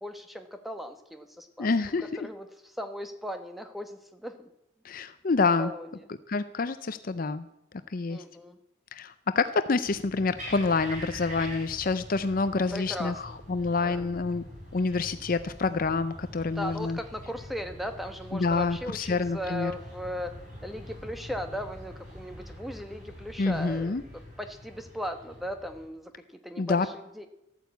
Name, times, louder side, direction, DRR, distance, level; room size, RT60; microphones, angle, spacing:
voice 1, 0.0-1.7 2.0-4.5 5.6-6.0 8.1-8.6 12.5-13.4 13.8-14.1 16.5-27.3, equal, ahead, 7 dB, 1.1 m, -38 dB
voice 2, 1.6-2.3 4.8-5.7 6.3-7.5 7.9-8.2 8.9-14.4 14.7-17.0 18.3-19.7 23.4-24.0 26.6-26.9, left 4 dB, 45° left, 12 dB, 0.5 m, -27 dB
sound 1, 9.8-25.9, equal, 35° right, 5.9 m, -45 dB
13.5 x 9.2 x 8.1 m, 0.85 s
head